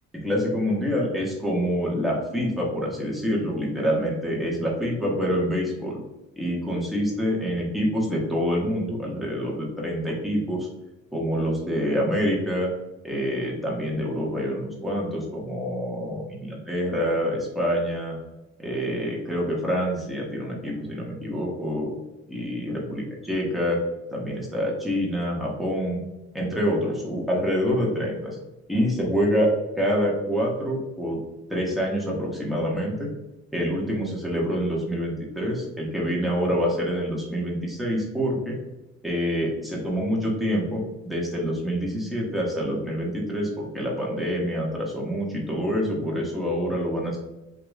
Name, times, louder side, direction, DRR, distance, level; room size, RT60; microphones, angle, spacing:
voice 1, 0.1-6.0 6.4-10.7 11.1-12.7 13.0-18.2 18.6-21.9 22.3-23.8 24.1-26.0 26.3-28.4 28.7-29.5 29.8-31.2 31.5-33.1 33.5-38.6 39.0-47.2, equal, ahead, -4 dB, 1.2 m, -26 dB
4.9 x 2.8 x 2.4 m, 1.0 s
cardioid pair, 90°, 30 cm